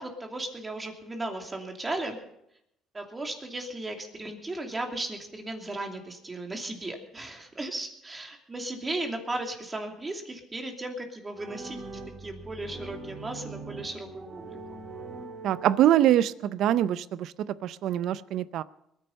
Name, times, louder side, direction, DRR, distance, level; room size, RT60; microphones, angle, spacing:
voice 1, 0.0-2.2 2.9-11.8 12.2-14.6, right 2 dB, 25° right, 3 dB, 2.9 m, -36 dB
sound 1, 11.4-16.3, right 3 dB, 45° right, 2.4 m, -42 dB
voice 2, 15.4-17.3 17.6-18.6, right 12 dB, 70° right, 17 dB, 0.5 m, -24 dB
21.5 x 10.0 x 5.4 m, 0.78 s
cardioid pair, 95°, 0 cm